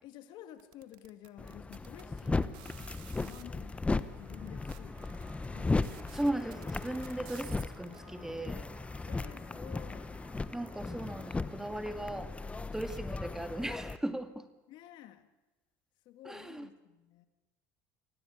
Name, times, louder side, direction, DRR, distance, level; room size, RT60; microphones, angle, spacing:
voice 1, 0.0-5.8 9.1-10.1 14.7-15.3 16.1-17.2, left 12 dB, 60° left, 9 dB, 2.3 m, -52 dB
sound 1, 0.6-3.4 4.1-4.2 4.5-8.0, right 15 dB, 65° right, 1.9 m, -54 dB
sound 2, 1.4-14.0, left 3 dB, 15° left, 1.0 m, -37 dB
sound 3, 3.9-13.6, right 4 dB, 50° right, 5.6 m, -60 dB
voice 2, 6.1-8.7 10.5-12.3 12.7-14.5 16.2-16.7, right 1 dB, 5° right, 8 dB, 2.2 m, -37 dB
26.0 x 17.0 x 9.6 m, 1.1 s
supercardioid pair, 95°, 9 cm